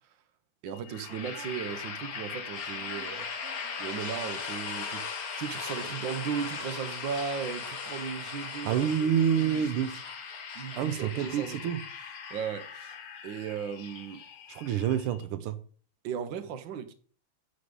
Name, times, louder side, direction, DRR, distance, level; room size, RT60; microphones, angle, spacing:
voice 1, 0.6-3.3 3.8-5.0 5.4-9.9 10.5-11.6 12.3-13.0 13.2-14.2 16.0-16.9, right 7 dB, 65° right, 1.6 m, -36 dB
sound 1, 0.7-15.2, left 7 dB, 90° left, 2.2 m, -46 dB
sound 2, 0.9-14.7, left 5 dB, 50° left, 1.5 m, -40 dB
voice 2, 2.8-3.9 8.6-10.0 10.7-11.8 14.5-15.6, right 8 dB, 85° right, 1.6 m, -29 dB
9.9 x 4.2 x 7.0 m
omnidirectional pair, 2.4 m